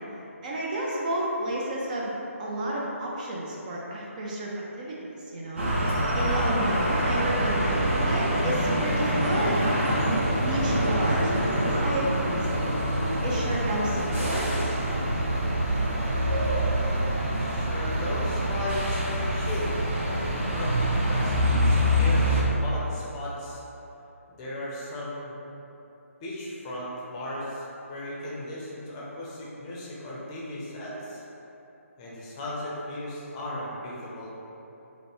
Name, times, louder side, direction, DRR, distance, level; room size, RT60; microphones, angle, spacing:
voice 1, 0.4-4.5 4.8-5.0 5.3-5.7 6.1-9.7 10.1-12.6 13.2-14.5, right 1 dB, 30° right, -4 dB, 0.5 m, -31 dB
sound 1, 5.6-22.4, equal, 50° right, 1.1 m, -25 dB
sound 2, 8.2-23.1, left 1 dB, 80° left, 0.6 m, -40 dB
voice 2, 16.6-17.1 17.4-19.8 20.5-23.6 24.3-25.4 26.2-31.2 32.0-34.3, left 1 dB, 20° left, -6 dB, 0.6 m, -36 dB
5.0 x 2.1 x 3.1 m, 3.0 s
figure-of-eight pair, 150°, 8 cm